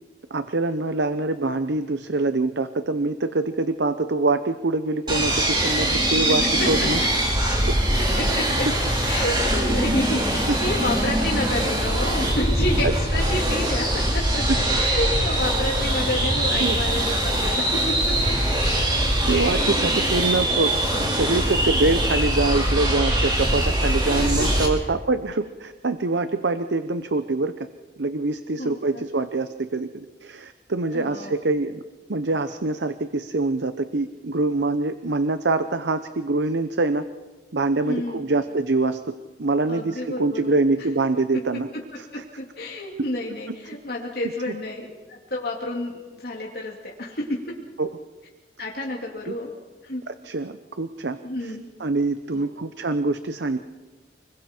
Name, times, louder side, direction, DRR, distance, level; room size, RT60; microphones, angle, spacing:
voice 1, 0.3-7.0 7.7-7.8 12.8-12.9 14.5-14.6 16.6-16.8 19.3-27.7 28.0-31.8 32.1-37.0 37.5-39.0 39.4-41.7 42.1-42.2 47.8-47.9 49.3-49.4 50.1-53.6, right 3 dB, 85° right, 10 dB, 0.8 m, -25 dB
sound 1, 5.1-24.7, right 1 dB, 25° right, 4.3 m, -22 dB
voice 2, 5.9-6.3 8.2-8.7 9.0-18.4 19.3-19.7 28.6-29.0 30.9-31.4 37.8-38.2 39.7-40.6 42.1-47.5 48.6-49.5 49.8-50.0 51.2-51.6 52.3-52.5, left 1 dB, 60° left, -2 dB, 2.6 m, -30 dB
29.5 x 21.5 x 4.5 m, 1.3 s
head